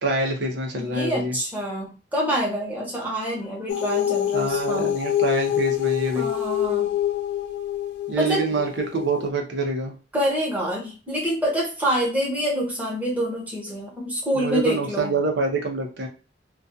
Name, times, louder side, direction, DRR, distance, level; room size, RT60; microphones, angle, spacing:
voice 1, 0.0-1.4 4.3-6.3 8.1-9.9 14.3-16.1, right 3 dB, 70° right, 1 dB, 0.7 m, -26 dB
voice 2, 0.7-4.9 6.1-6.9 8.2-8.5 10.1-15.1, equal, 10° right, -4 dB, 0.9 m, -26 dB
sound 1, 3.7-9.3, left 11 dB, 70° left, 0.4 m, -26 dB
2.3 x 2.3 x 2.6 m, 0.33 s
head